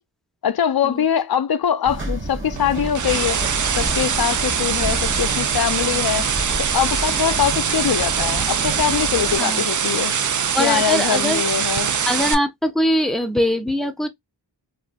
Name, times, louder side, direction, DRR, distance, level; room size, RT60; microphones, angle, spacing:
voice 1, 0.4-3.4 3.7-6.3 6.6-10.2 10.6-11.9, left 8 dB, 55° left, 0.5 m, -22 dB
sound 1, 1.9-9.4, right 1 dB, 30° right, 1.1 m, -30 dB
sound 2, 2.6-12.3, right 7 dB, 45° right, 0.4 m, -23 dB
voice 2, 10.5-11.4 12.1-14.1, left 1 dB, ahead, 0.6 m, -22 dB
2.5 x 2.4 x 3.5 m
wide cardioid pair, 40°, 43 cm